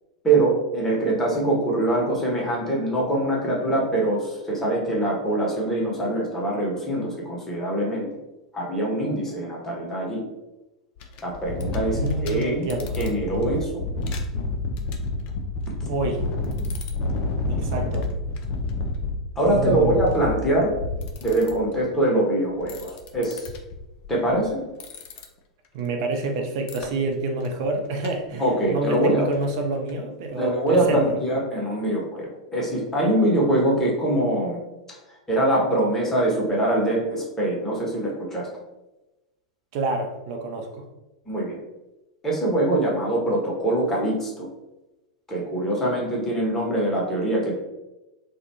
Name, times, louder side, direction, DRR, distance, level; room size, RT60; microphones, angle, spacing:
voice 1, 0.2-8.1 8.5-10.2 11.2-12.7 13.0-13.8 15.8-15.9 19.4-20.7 21.2-23.5 24.1-24.6 28.4-29.3 30.4-34.6 34.9-35.0 35.3-38.5 41.3-41.6 42.2-44.5 45.3-47.5, right 1 dB, 15° left, -4 dB, 0.9 m, -23 dB
sound 1, 11.0-21.8 22.5-24.5 24.8-25.2 26.7-26.9 27.4-27.7 28.0-28.1 28.3-28.4 28.8-28.9 29.3-29.4 29.9-30.0, left 2 dB, 45° left, 0.4 m, -29 dB
voice 2, 11.9-12.9 15.9-16.2 17.5-18.1 19.5-20.0 25.7-28.4 28.7-31.0 39.7-40.9, right 2 dB, 55° right, 3 dB, 0.5 m, -28 dB
2.4 x 2.2 x 2.8 m, 1.0 s
figure-of-eight pair, 95°, 3 cm